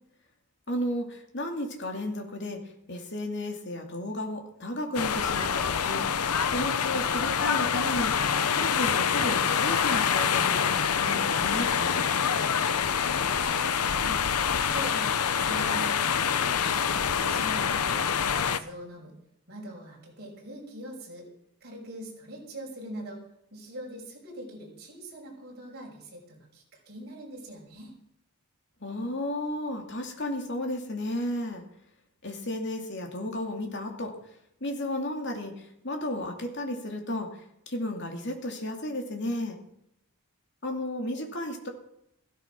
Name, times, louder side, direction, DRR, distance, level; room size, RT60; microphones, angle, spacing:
voice 1, 0.7-2.6 2.9-6.1 6.5-8.2 8.5-12.1 28.8-31.6 32.2-34.2 34.6-39.6 40.6-41.7, left 1 dB, 50° left, 3 dB, 2.7 m, -33 dB
sound 1, 5.0-18.6, left 7 dB, 85° left, 0.8 m, -26 dB
voice 2, 13.4-18.1 18.4-19.1 19.5-21.3 21.6-23.2 23.5-27.9, right 1 dB, 45° right, -2 dB, 6.2 m, -43 dB
15.5 x 13.0 x 6.2 m, 0.77 s
head